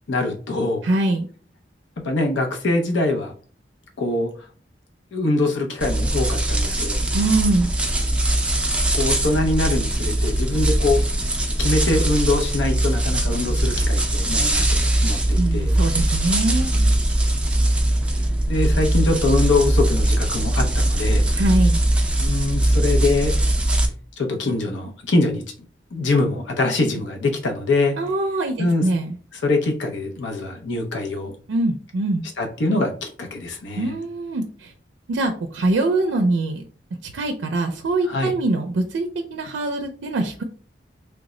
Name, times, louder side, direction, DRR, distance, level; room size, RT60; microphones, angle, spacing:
voice 1, 0.1-0.8 2.0-3.3 4.0-4.3 5.1-7.0 8.9-11.0 11.6-15.8 16.7-17.0 18.2-21.3 22.2-23.3 24.2-25.4 25.9-28.0 28.6-28.9 29.3-31.3 32.4-34.0 38.0-38.3, left 2 dB, 85° left, 3 dB, 0.6 m, -23 dB
voice 2, 0.8-1.3 7.1-7.7 15.4-16.7 21.3-21.8 28.0-29.1 31.5-32.3 33.8-34.7 35.1-36.6 37.1-40.4, right 2 dB, 90° right, 5 dB, 0.4 m, -23 dB
sound 1, 5.8-23.9, right 1 dB, 5° right, 0.4 m, -21 dB
3.3 x 2.0 x 3.6 m, 0.42 s
head